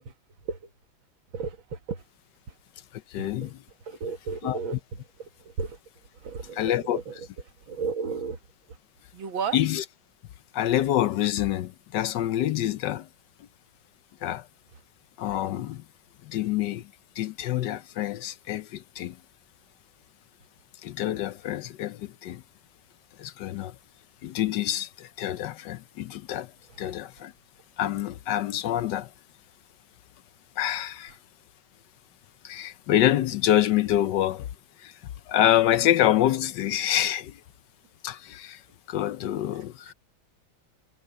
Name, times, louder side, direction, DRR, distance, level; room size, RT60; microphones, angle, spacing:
voice 1, 1.3-2.0 3.2-3.5 3.9-4.8 5.2-5.8 6.2-7.3 7.7-8.4 9.1-9.6, right 5 dB, 85° right, 2.3 m, -34 dB
voice 2, 2.9-3.6 4.4-4.6 6.5-7.0 9.5-9.8 10.5-13.1 14.2-14.5 15.2-15.8 16.2-16.9 17.2-19.2 20.8-22.4 23.2-23.8 24.2-26.5 26.8-27.3 27.8-29.1 30.6-31.2 32.4-34.5 34.8-35.0 35.3-37.4 38.0-38.6 38.9-39.9, left 12 dB, 70° left, 1.2 m, -26 dB
omnidirectional pair, 2.1 m